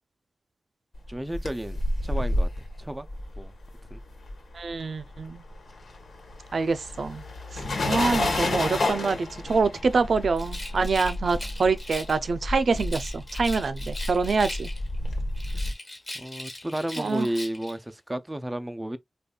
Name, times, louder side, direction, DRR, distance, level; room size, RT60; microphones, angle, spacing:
sound 1, 1.1-4.7 5.0-15.7, left 1 dB, 80° left, 1.2 m, -30 dB
voice 1, 1.1-2.5 2.8-3.1 3.4-3.5 3.9-4.0 15.5-15.6 16.1-19.0, right 1 dB, 15° right, 0.4 m, -32 dB
voice 2, 4.5-5.4 6.5-7.2 7.5-14.7 17.0-17.3, right 4 dB, 80° right, 0.4 m, -26 dB
Rattle, 10.3-12.3 12.7-15.0 15.3-17.8, left 1 dB, 25° left, 1.6 m, -40 dB
5.1 x 2.2 x 2.3 m
wide cardioid pair, 115°, 0 cm